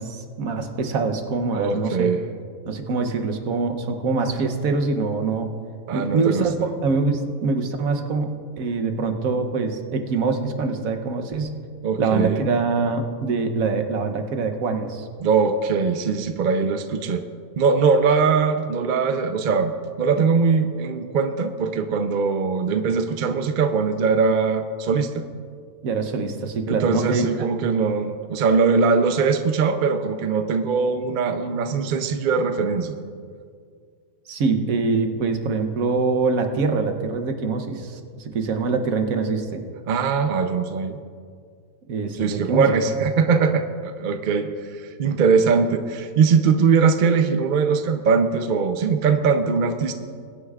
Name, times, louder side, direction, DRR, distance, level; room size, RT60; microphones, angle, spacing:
voice 1, 0.0-2.1 2.7-5.5 5.9-6.6 6.8-11.6 12.0-15.1 25.8-27.5 34.3-39.6 41.9-42.7, right 4 dB, 75° right, 6 dB, 1.3 m, -24 dB
voice 2, 1.5-2.2 5.9-6.5 11.8-12.4 15.2-17.2 17.6-19.7 20.0-25.2 26.7-32.9 39.9-41.0 42.2-44.5 45.0-49.9, right 5 dB, 50° right, 7 dB, 0.6 m, -21 dB
22.0 x 9.7 x 2.4 m, 2.1 s
omnidirectional pair, 1.5 m